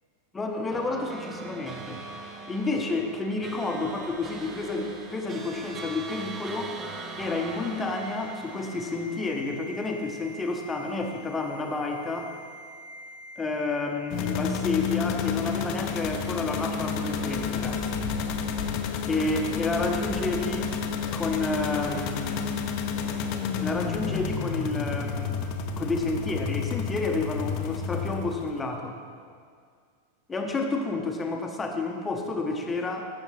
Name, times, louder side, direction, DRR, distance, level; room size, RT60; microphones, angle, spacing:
voice 1, 0.3-2.0 2.5-6.7 7.2-12.3 13.4-17.8 19.1-20.7 21.1-22.4 23.6-25.4 25.8-29.0 30.3-33.1, left 3 dB, 15° left, 3 dB, 0.9 m, -30 dB
sound 1, 0.7-10.3, right 3 dB, 25° right, 0.8 m, -41 dB
sound 2, 5.8-14.7 15.0-15.2, left 2 dB, 65° right, 2.2 m, -47 dB
sound 3, 14.1-28.6, left 6 dB, 40° left, 0.7 m, -30 dB
14.5 x 6.3 x 3.2 m, 2.1 s
figure-of-eight pair, 90°, 0 cm